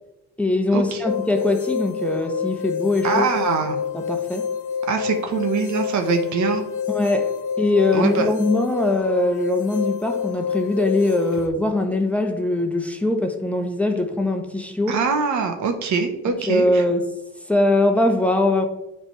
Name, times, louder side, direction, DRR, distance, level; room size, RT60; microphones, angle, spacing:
voice 1, 0.4-3.3 3.6-4.5 6.9-7.3 7.6-15.0 16.5-17.1 17.5-18.7, left 2 dB, 5° left, 4 dB, 1.0 m, -21 dB
sound 1, 1.0-11.5, left 7 dB, 80° left, 0.9 m, -28 dB
voice 2, 3.0-3.8 4.9-6.6 7.9-8.3 14.9-16.8, right 5 dB, 70° right, 5 dB, 1.1 m, -23 dB
8.8 x 3.5 x 4.5 m, 0.98 s
cardioid pair, 90°, 30 cm